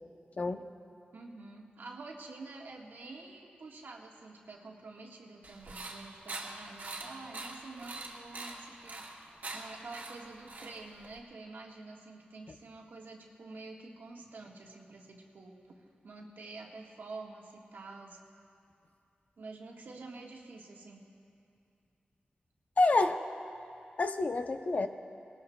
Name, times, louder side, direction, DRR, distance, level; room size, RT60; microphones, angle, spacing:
voice 1, 1.1-18.2 19.4-21.0, right 3 dB, 80° right, -1 dB, 1.5 m, -48 dB
sound 1, 5.4-11.2, right 2 dB, 65° right, 1.6 m, -44 dB
voice 2, 22.8-23.2 24.0-24.9, left 3 dB, 50° left, 7 dB, 0.6 m, -27 dB
20.0 x 18.0 x 2.3 m, 2.5 s
wide cardioid pair, 105°, 3 cm